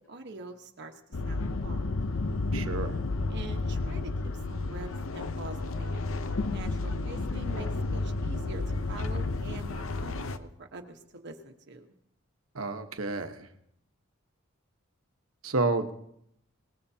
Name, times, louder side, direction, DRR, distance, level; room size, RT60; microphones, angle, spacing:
voice 1, 0.1-1.8 3.3-6.0 6.5-11.8, right 2 dB, 55° right, 4 dB, 1.2 m, -45 dB
sound 1, 1.1-10.4, left 3 dB, 70° left, 0.8 m, -31 dB
voice 2, 2.5-3.0 12.5-13.5 15.4-15.9, right 3 dB, 80° right, 6 dB, 1.2 m, -30 dB
25.0 x 19.5 x 2.8 m, 0.74 s
head